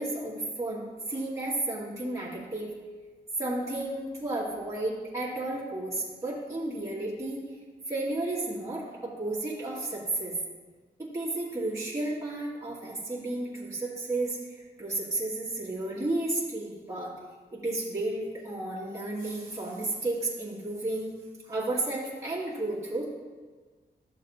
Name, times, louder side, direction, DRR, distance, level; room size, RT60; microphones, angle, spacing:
voice 1, 0.0-2.7 3.4-7.5 7.9-10.4 11.0-17.1 17.5-21.1 21.4-23.1, right 2 dB, 15° right, -8 dB, 2.3 m, -32 dB
13.0 x 7.1 x 2.9 m, 1.4 s
wide cardioid pair, 155°, 18 cm